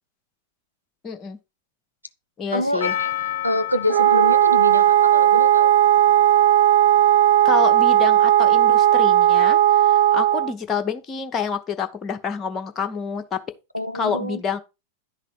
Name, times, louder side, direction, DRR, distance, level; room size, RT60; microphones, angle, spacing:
voice 1, 1.0-1.4 2.4-2.9 7.4-13.4 13.9-14.6, left 6 dB, 25° left, 1.0 m, -28 dB
voice 2, 2.5-3.1 3.4-5.7 13.7-14.4, left 1 dB, 90° left, 0.4 m, -26 dB
Percussion, 2.8-7.2 7.8-7.9, left 10 dB, 55° left, 0.9 m, -32 dB
Wind instrument woodwind instrument, 3.9-10.5, right 12 dB, 65° right, 0.4 m, -16 dB
10.5 x 4.1 x 5.1 m
figure-of-eight pair, 90°, 0 cm